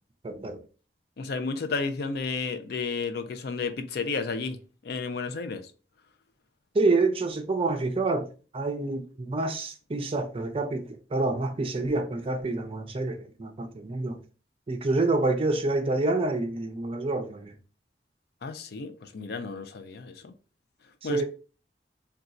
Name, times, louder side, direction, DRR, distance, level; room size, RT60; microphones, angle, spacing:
voice 1, 0.2-0.6 6.7-8.3 8.5-14.2 14.7-17.6 21.0-21.2, right 2 dB, 30° right, 0.4 m, -27 dB
voice 2, 1.2-4.6 4.8-5.6 18.4-20.3 21.0-21.2, left 4 dB, 60° left, 0.4 m, -32 dB
2.5 x 2.3 x 4.0 m
head